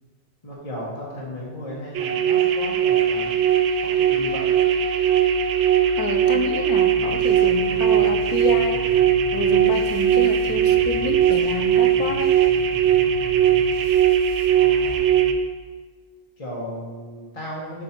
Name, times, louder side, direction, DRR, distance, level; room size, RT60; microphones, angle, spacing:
voice 1, 0.4-3.4 3.8-4.5 14.5-15.4 16.4-17.8, equal, 25° left, -6 dB, 1.1 m, -35 dB
sound 1, 1.9-15.3, right 9 dB, 65° right, 0.7 m, -19 dB
voice 2, 6.0-8.8 9.3-12.3, left 5 dB, 75° left, 7 dB, 1.1 m, -29 dB
sound 2, 7.0-15.0, right 1 dB, 60° left, 2.2 m, -40 dB
7.4 x 5.3 x 4.4 m, 1.5 s
omnidirectional pair, 1.6 m